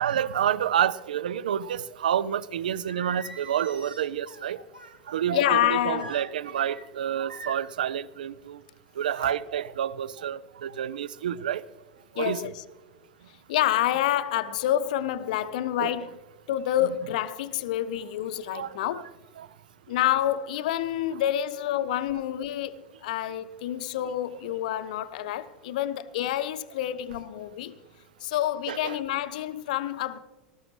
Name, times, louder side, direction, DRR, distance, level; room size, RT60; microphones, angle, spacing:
voice 1, 0.0-4.6 5.1-8.6 9.0-11.6 12.2-12.5 15.8-15.9 18.5-19.0 19.4-19.5 28.7-29.0, right 9 dB, 70° right, 0.4 m, -29 dB
Singing, 2.8-5.0 6.0-6.8 7.3-7.8, right 2 dB, 85° right, 1.3 m, -44 dB
voice 2, 5.3-6.2 12.2-12.6 13.5-16.1 16.5-19.1 19.9-27.8 28.2-30.2, left 12 dB, 60° left, 0.6 m, -28 dB
19.5 x 13.0 x 3.2 m
figure-of-eight pair, 80°, 5 cm